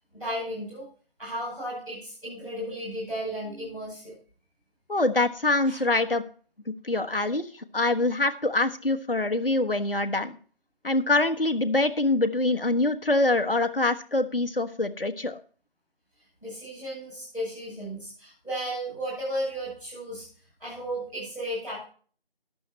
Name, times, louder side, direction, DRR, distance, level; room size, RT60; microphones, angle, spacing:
voice 1, 0.1-0.8 1.2-4.1 5.6-5.8 16.4-20.2 20.6-21.9, equal, ahead, -21 dB, 7.5 m, -34 dB
voice 2, 4.9-6.2 6.7-7.5 7.7-10.4 10.8-15.4, left 2 dB, 65° left, 6 dB, 1.4 m, -24 dB
14.0 x 11.0 x 3.1 m, 0.43 s
figure-of-eight pair, 170°, 30 cm